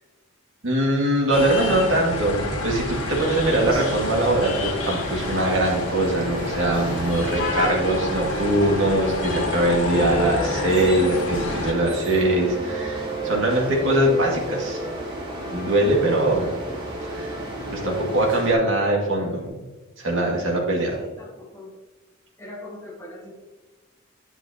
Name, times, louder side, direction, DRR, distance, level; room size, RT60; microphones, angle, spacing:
voice 1, 0.6-14.8 15.5-16.5 17.0-17.4 17.7-19.6 20.0-21.0, right 1 dB, 65° right, -2 dB, 2.0 m, -22 dB
sound 1, 1.3-11.7, left 3 dB, 90° left, 1.4 m, -29 dB
sound 2, 2.9-18.5, right 1 dB, 25° right, 1.7 m, -34 dB
sound 3, 6.0-19.5, right 1 dB, 55° left, 1.9 m, -35 dB
voice 2, 21.0-21.7 22.4-23.3, left 1 dB, 10° left, -3 dB, 1.3 m, -41 dB
9.3 x 5.8 x 2.9 m, 1.2 s
head